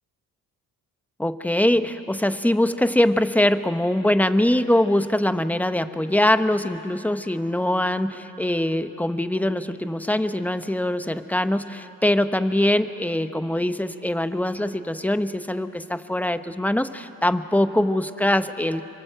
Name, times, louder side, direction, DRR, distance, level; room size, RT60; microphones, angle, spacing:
voice 1, 1.2-18.8, left 1 dB, 5° left, 10 dB, 1.1 m, -23 dB
26.5 x 24.0 x 8.0 m, 2.9 s
cardioid pair, 80°, 35 cm